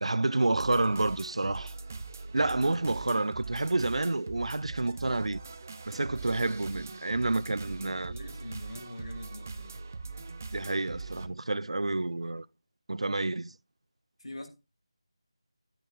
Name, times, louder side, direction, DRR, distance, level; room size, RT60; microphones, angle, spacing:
voice 1, 0.0-1.7 2.3-5.4 5.9-8.2 10.5-12.5 12.9-13.5, right 2 dB, 90° right, 0.4 m, -29 dB
sound 1, 0.5-11.3, right 4 dB, 25° right, 0.5 m, -41 dB
voice 2, 5.9-6.4 7.3-9.9 14.2-14.5, left 1 dB, 85° left, 2.6 m, -45 dB
12.0 x 8.9 x 2.4 m
figure-of-eight pair, 175°, 3 cm